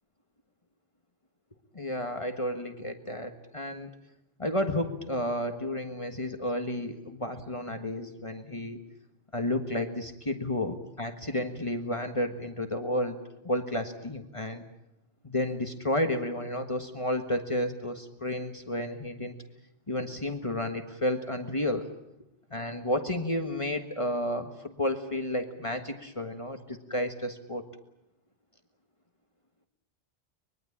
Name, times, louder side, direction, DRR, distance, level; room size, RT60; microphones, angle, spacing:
voice 1, 1.7-3.9 4.4-8.8 9.3-13.2 13.4-14.6 15.2-19.3 19.9-21.9 22.5-27.7, left 1 dB, 30° left, 6 dB, 1.6 m, -31 dB
24.0 x 22.0 x 8.6 m, 0.86 s
omnidirectional pair, 1.0 m